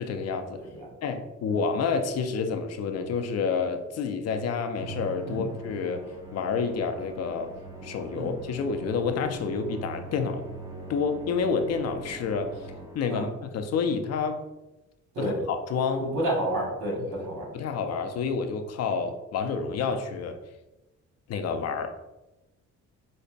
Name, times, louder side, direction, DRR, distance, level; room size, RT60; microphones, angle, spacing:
voice 1, 0.0-0.6 1.0-7.5 7.8-10.4 10.9-12.6 12.9-14.5 15.2-16.1 17.0-17.1 17.5-20.4 21.3-21.9, left 5 dB, 55° left, 7 dB, 0.5 m, -29 dB
voice 2, 0.5-0.9 1.5-1.6 5.3-5.5 8.1-8.3 13.1-13.2 15.1-15.4 16.0-17.5, right 1 dB, 90° right, -3 dB, 1.3 m, -30 dB
Musical instrument, 4.8-13.3, right 2 dB, 10° right, 0.6 m, -42 dB
5.2 x 2.1 x 2.5 m, 0.99 s
cardioid pair, 90°, 30 cm